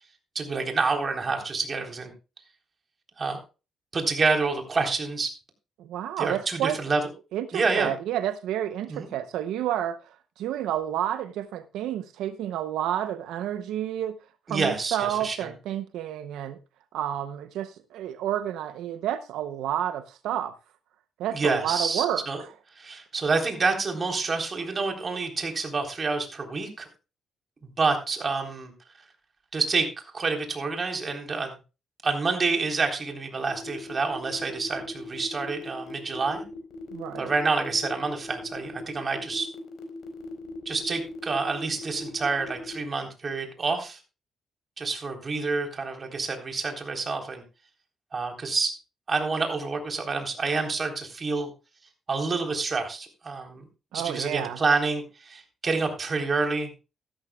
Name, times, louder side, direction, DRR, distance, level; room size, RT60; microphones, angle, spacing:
voice 1, 0.4-2.1 3.2-3.4 3.9-5.3 6.2-7.0 7.5-7.9 8.9-9.1 14.5-15.5 21.3-22.4 22.8-26.9 27.8-28.7 29.5-29.9 30.1-31.5 32.0-36.4 37.2-39.5 40.7-44.0 44.8-47.4 48.1-48.7 49.1-51.5 52.1-53.6 53.9-56.7, right 4 dB, 35° right, 3.7 m, -28 dB
voice 2, 5.8-6.8 7.3-14.1 14.5-16.6 16.9-20.5 21.2-22.5 36.9-37.3 53.9-54.6, right 11 dB, 85° right, 0.7 m, -30 dB
sound 1, 33.5-42.8, left 2 dB, 75° left, 4.4 m, -42 dB
15.5 x 13.0 x 2.3 m
cardioid pair, 90°, 0 cm